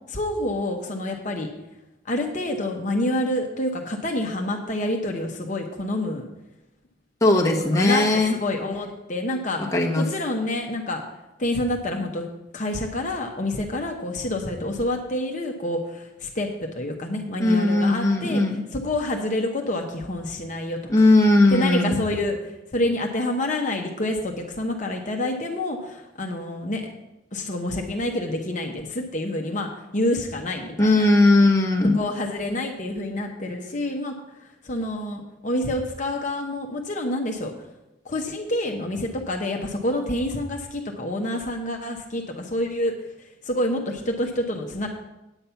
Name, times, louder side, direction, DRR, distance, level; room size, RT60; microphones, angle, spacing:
voice 1, 0.1-1.5 2.0-6.3 7.6-11.0 11.4-12.3 12.5-18.4 18.7-20.8 21.5-26.9 27.3-31.1 31.9-37.7 38.0-44.9, left 1 dB, 40° left, 2 dB, 0.9 m, -28 dB
voice 2, 7.2-8.3 9.6-10.0 17.4-18.6 20.9-22.0 30.8-32.0, left 2 dB, 15° left, 0 dB, 1.1 m, -18 dB
9.0 x 8.5 x 5.7 m, 0.95 s
head